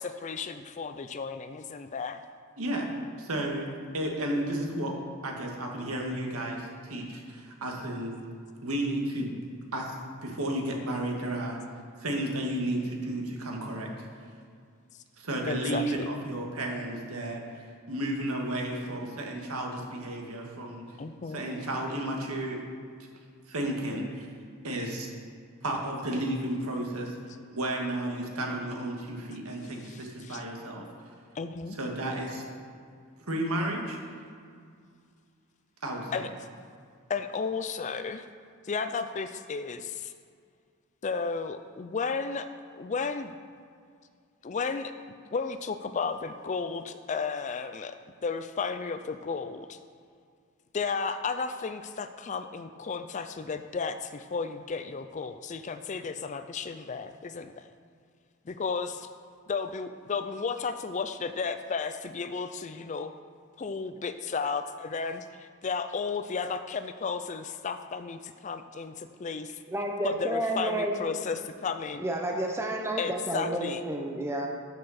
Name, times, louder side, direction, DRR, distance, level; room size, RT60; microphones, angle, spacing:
voice 1, 0.0-2.2 15.5-16.1 21.0-21.4 29.8-30.4 31.4-31.8 36.1-36.3 37.1-38.3 38.6-40.1 41.0-42.5 42.7-43.3 44.4-44.9 45.3-48.0 48.2-49.8 50.7-57.7 58.5-59.1 59.5-63.1 63.6-69.6 70.0-72.1 73.0-73.8, left 5 dB, 35° left, 10 dB, 0.4 m, -33 dB
voice 2, 2.6-2.9 3.2-3.7 3.9-4.9 5.2-8.1 8.6-9.3 9.7-11.6 12.0-13.9 15.2-20.8 21.3-22.6 23.5-24.3 24.6-25.1 25.6-27.2 27.5-30.8 31.8-32.4 33.3-34.0 35.8-36.2, right 1 dB, 80° right, 1 dB, 1.8 m, -32 dB
voice 3, 69.7-71.0 72.0-74.5, right 1 dB, 10° right, 1 dB, 0.8 m, -30 dB
12.5 x 6.7 x 4.2 m, 2.2 s
head